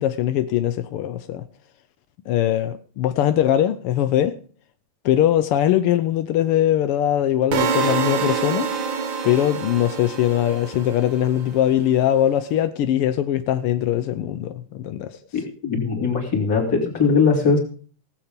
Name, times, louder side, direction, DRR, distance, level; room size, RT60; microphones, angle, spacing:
voice 1, 0.0-1.4 2.3-4.3 5.0-8.7 9.2-15.2, left 11 dB, 75° left, 1.3 m, -21 dB
sound 1, 7.5-11.6, right 6 dB, 55° right, 1.5 m, -26 dB
voice 2, 15.3-17.6, left 5 dB, 30° left, 3.6 m, -20 dB
17.5 x 7.8 x 5.2 m
omnidirectional pair, 3.3 m